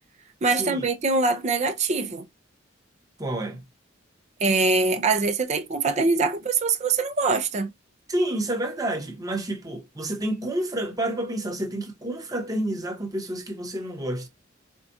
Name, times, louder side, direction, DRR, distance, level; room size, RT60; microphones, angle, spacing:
voice 1, 0.4-2.3 4.4-7.7, right 3 dB, 35° right, 0.5 m, -23 dB
voice 2, 3.2-3.6 8.1-14.3, right 1 dB, 20° right, 0.9 m, -29 dB
4.5 x 2.4 x 2.6 m
head